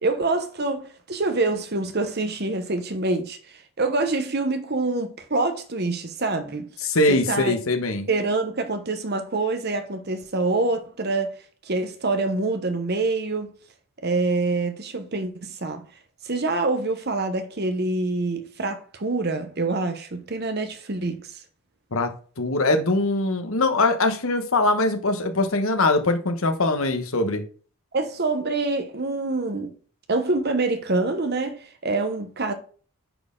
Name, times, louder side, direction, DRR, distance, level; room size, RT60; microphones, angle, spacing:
voice 1, 0.0-6.6 7.1-7.6 8.1-11.4 11.6-13.5 14.0-15.8 16.2-21.3 27.9-29.7 30.1-32.5, right 3 dB, 45° right, 1.0 m, -26 dB
voice 2, 6.8-8.1 21.9-22.1 22.4-27.4, left 2 dB, 70° left, 1.2 m, -22 dB
9.1 x 4.3 x 3.8 m
head